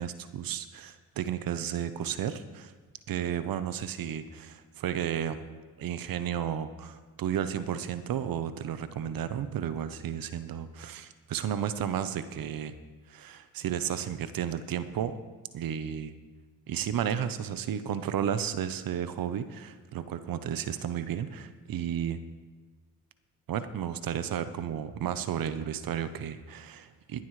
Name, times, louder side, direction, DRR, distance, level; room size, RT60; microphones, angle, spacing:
voice 1, 0.0-2.7 3.1-5.4 5.8-12.7 13.1-15.2 15.5-16.1 16.7-22.2 23.5-27.2, right 9 dB, 70° right, 12 dB, 0.9 m, -33 dB
17.0 x 11.5 x 3.3 m, 1.3 s
supercardioid pair, 55°, 36 cm